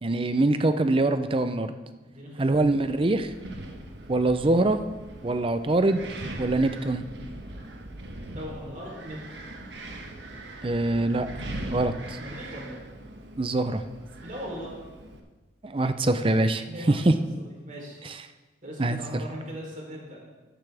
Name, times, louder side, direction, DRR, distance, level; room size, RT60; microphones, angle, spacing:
voice 1, 0.0-1.7 2.4-3.3 4.1-4.8 5.2-6.0 6.4-7.0 10.6-11.3 11.7-12.2 13.4-13.8 15.6-16.6 17.1-17.2 18.8-19.0, right 2 dB, 30° right, 10 dB, 0.6 m, -23 dB
voice 2, 2.0-2.6 8.3-9.4 12.1-12.8 14.2-14.7 16.7-17.1 17.4-18.0 18.6-20.2, equal, 45° right, -2 dB, 3.4 m, -39 dB
Wind, 2.6-15.2, right 1 dB, 85° right, 1.3 m, -41 dB
13.5 x 9.8 x 3.4 m, 1.2 s
head